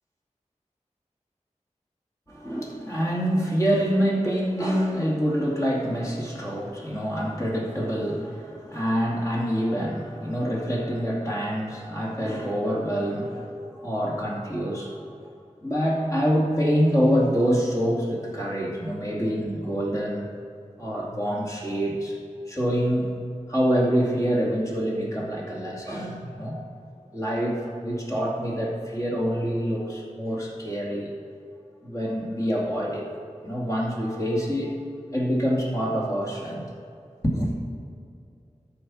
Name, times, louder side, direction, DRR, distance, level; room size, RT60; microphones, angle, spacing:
voice 1, 2.3-15.1 15.6-20.3 20.8-22.2 22.5-23.1 23.5-26.8 27.1-31.1 31.8-33.0 33.4-34.8 35.1-36.7 37.2-37.5, equal, 25° left, -4 dB, 2.4 m, -26 dB
13.0 x 4.4 x 6.2 m, 2.4 s
wide cardioid pair, 40°, 13 cm